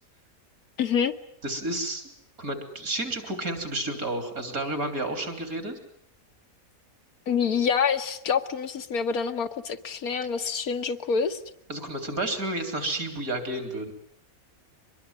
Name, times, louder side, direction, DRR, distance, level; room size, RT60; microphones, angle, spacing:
voice 1, 0.8-1.1 7.3-11.4, left 6 dB, 85° left, 8 dB, 1.8 m, -26 dB
voice 2, 1.4-2.1 2.4-5.8 11.7-13.9, right 1 dB, 75° right, 8 dB, 4.2 m, -31 dB
24.5 x 22.0 x 9.5 m, 0.69 s
omnidirectional pair, 1.5 m